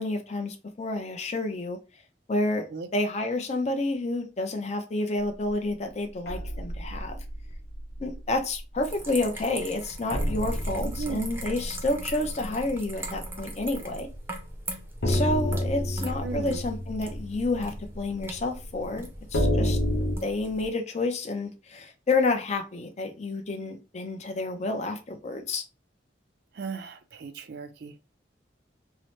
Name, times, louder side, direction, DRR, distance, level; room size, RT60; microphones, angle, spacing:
voice 1, 0.0-1.8 2.3-7.2 8.0-14.1 15.1-19.8 20.2-25.6, left 2 dB, 40° left, 0.5 m, -29 dB
sound 1, 6.3-8.2 8.6-8.8 9.2-9.3 10.1-14.0 14.3-14.4 15.0-20.2, equal, 85° left, 0.6 m, -30 dB
sound 2, 8.8-20.7, right 1 dB, 15° right, 0.5 m, -41 dB
voice 2, 10.8-11.2 16.2-16.6 26.5-27.9, right 4 dB, 65° right, 0.4 m, -36 dB
2.8 x 2.0 x 3.0 m
head